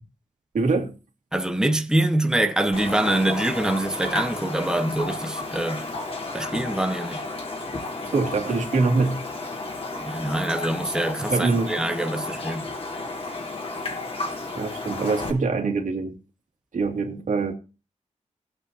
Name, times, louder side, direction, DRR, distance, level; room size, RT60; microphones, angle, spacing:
voice 1, 0.5-0.9 8.1-9.2 11.2-11.8 14.5-16.2 16.7-17.5, right 4 dB, 80° right, 2.5 m, -24 dB
voice 2, 1.3-5.8 6.3-7.2 10.0-12.7, right 1 dB, 5° right, 1.1 m, -24 dB
Raindrop, 2.7-15.3, left 2 dB, 50° left, 3.7 m, -33 dB
18.5 x 8.6 x 2.8 m
wide cardioid pair, 120°, 13 cm